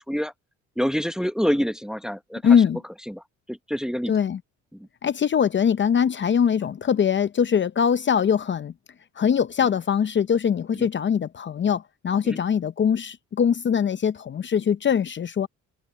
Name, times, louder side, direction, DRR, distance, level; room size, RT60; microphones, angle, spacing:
voice 1, 0.8-2.4 3.1-3.2 3.5-4.1 4.7-4.9 10.8-10.9 12.2-12.4, equal, ahead, 0.8 m, -26 dB
voice 2, 2.4-2.8 4.1-4.4 5.0-8.7 9.2-15.5, left 7 dB, 40° left, 0.6 m, -22 dB
cardioid pair, 90°, 30 cm